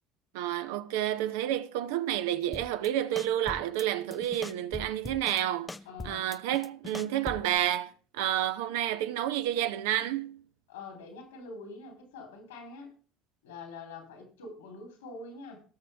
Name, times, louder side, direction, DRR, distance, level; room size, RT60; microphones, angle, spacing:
voice 1, 0.3-5.7 6.0-10.4, right 12 dB, 80° right, 0.7 m, -30 dB
sound 1, 2.5-2.9 3.2-3.8 4.1-5.4 5.7-7.6, left 3 dB, 15° left, 0.6 m, -41 dB
voice 2, 5.8-6.2 10.7-12.9 13.4-15.6, left 3 dB, 90° left, 3.5 m, -45 dB
18.5 x 6.4 x 3.4 m
hypercardioid pair, 75°, 0 cm